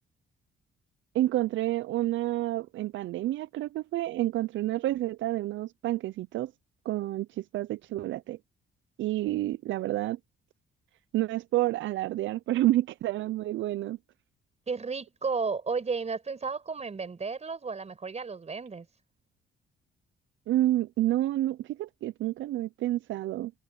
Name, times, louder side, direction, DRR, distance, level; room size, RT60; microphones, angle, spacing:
voice 1, 1.1-6.5 6.9-8.4 9.0-10.2 11.1-14.0 20.5-23.5, right 15 dB, 75° right, 0.5 m, -29 dB
voice 2, 14.7-18.9, right 4 dB, 35° right, 5.1 m, -33 dB
cardioid pair, 90°, 20 cm